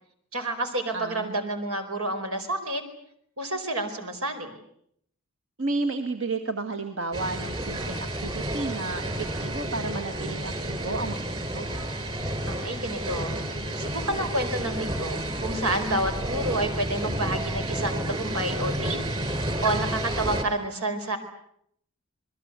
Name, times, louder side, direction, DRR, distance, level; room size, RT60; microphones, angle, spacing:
voice 1, 0.3-2.8 3.4-4.5 12.5-13.3 13.8-19.0 19.6-21.2, right 1 dB, 85° right, 6 dB, 4.9 m, -29 dB
voice 2, 0.9-1.5 5.6-11.2 11.5-11.7, right 3 dB, 65° right, 6 dB, 1.9 m, -32 dB
sound 1, 7.1-20.4, right 1 dB, 25° right, 4.3 m, -31 dB
28.0 x 21.5 x 8.3 m, 0.70 s
head